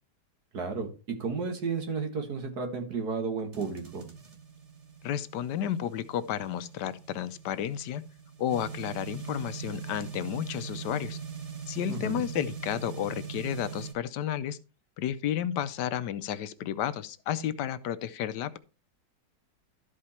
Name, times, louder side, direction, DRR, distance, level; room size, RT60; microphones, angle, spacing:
voice 1, 0.5-4.0 11.9-12.2, right 5 dB, 60° right, 2.2 m, -33 dB
sound 1, 3.5-13.9, right 7 dB, 45° right, 1.4 m, -42 dB
voice 2, 5.0-8.0 8.4-11.2 11.7-14.6 15.0-18.6, left 10 dB, 75° left, 1.2 m, -32 dB
12.5 x 5.0 x 4.2 m
omnidirectional pair, 1.9 m